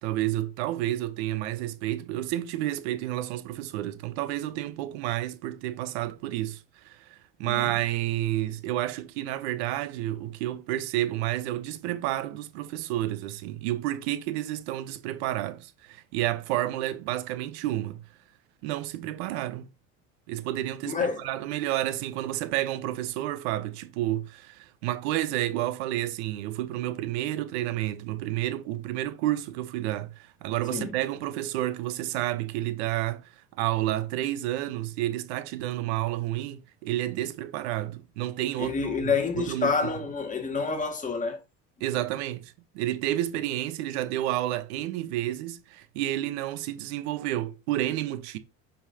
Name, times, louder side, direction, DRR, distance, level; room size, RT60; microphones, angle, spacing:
voice 1, 0.0-18.0 18.6-19.7 20.3-39.7 41.8-48.4, right 14 dB, 85° right, 1.0 m, -30 dB
voice 2, 7.4-7.7 20.9-21.3 30.7-30.9 38.5-41.4, left 5 dB, 25° left, 2.0 m, -28 dB
8.6 x 5.7 x 2.8 m
supercardioid pair, 115°, 32 cm